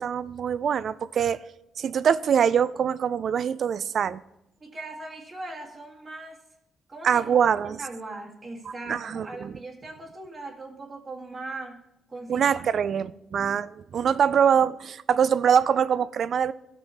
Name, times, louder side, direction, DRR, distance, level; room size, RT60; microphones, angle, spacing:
voice 1, 0.0-1.4 1.8-4.2 7.0-7.8 8.9-9.5 12.3-16.5, right 8 dB, 55° right, 0.4 m, -23 dB
voice 2, 4.6-6.4 6.9-7.4 7.7-12.5 12.9-13.1, right 2 dB, 35° right, 1.9 m, -40 dB
14.0 x 6.1 x 4.3 m
cardioid pair, 105°, 0 cm